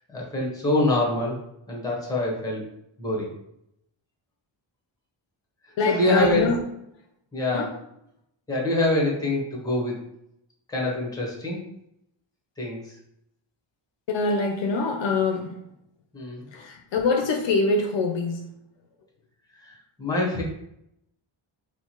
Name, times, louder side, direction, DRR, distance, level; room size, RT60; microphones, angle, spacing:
voice 1, 0.1-1.4 1.7-2.6 3.0-3.3 5.8-6.5 7.3-7.7 8.5-10.0 10.7-11.6 12.6-13.0 16.1-16.6 19.6-19.7 20.0-20.4, left 2 dB, 10° left, -2 dB, 0.9 m, -25 dB
voice 2, 5.8-6.6 7.5-7.7 14.1-15.6 16.5-18.5, left 3 dB, 65° left, 4 dB, 0.5 m, -24 dB
4.4 x 2.1 x 2.8 m, 0.78 s
wide cardioid pair, 125°, 49 cm